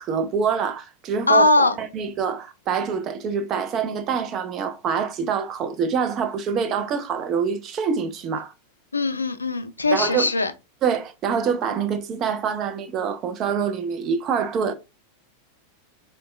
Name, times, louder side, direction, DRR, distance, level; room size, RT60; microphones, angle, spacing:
voice 1, 0.0-1.4 1.8-8.5 9.9-10.3 10.8-14.7, right 6 dB, 30° right, 0.4 m, -25 dB
voice 2, 1.3-1.8 8.9-10.5, left 2 dB, 80° left, 0.3 m, -20 dB
4.0 x 2.2 x 2.3 m
figure-of-eight pair, 90°, 0 cm